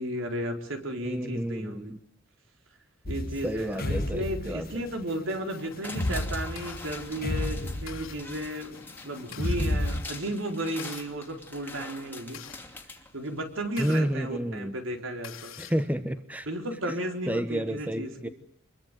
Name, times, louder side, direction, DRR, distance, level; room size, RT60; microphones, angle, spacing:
voice 1, 0.0-1.9 3.1-12.4 13.1-15.5 16.4-18.3, right 1 dB, 70° right, 4 dB, 4.4 m, -34 dB
voice 2, 1.0-2.0 3.4-4.7 13.8-14.7 15.6-16.5 17.3-18.3, right 1 dB, 10° right, 10 dB, 1.1 m, -30 dB
sound 1, 3.1-5.0 5.9-8.4 9.3-10.0, left 1 dB, 45° left, 1.5 m, -31 dB
sound 2, 5.5-13.7 14.0-14.1, left 3 dB, 10° left, 2.6 m, -44 dB
sound 3, 6.6-6.8 7.4-7.5 7.9-8.2 8.9-9.6 10.5-11.1 11.9-14.0 14.6-14.7 15.0-15.9, left 9 dB, 90° left, 3.8 m, -45 dB
26.5 x 22.5 x 9.3 m, 0.65 s
head